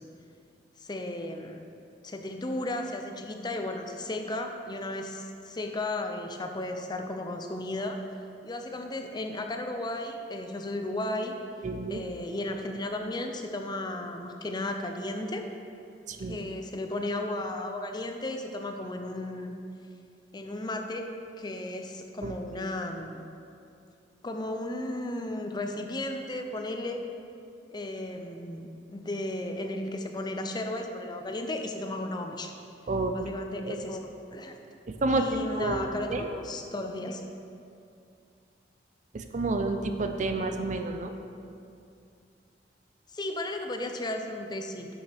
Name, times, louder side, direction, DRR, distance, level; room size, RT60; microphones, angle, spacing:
voice 1, 0.8-1.6 2.0-8.0 8.4-11.3 11.9-15.4 16.2-19.5 20.3-21.1 21.4-23.3 24.2-27.0 27.7-32.5 33.1-34.6 35.1-37.2 43.1-44.9, left 1 dB, 25° left, 4 dB, 0.5 m, -34 dB
voice 2, 11.6-12.0 16.1-16.4 22.2-22.3 32.9-33.1 33.6-33.9 35.0-35.2 35.5-36.3 39.1-41.1, right 3 dB, 45° right, 6 dB, 0.5 m, -29 dB
9.8 x 6.4 x 3.5 m, 2.5 s
head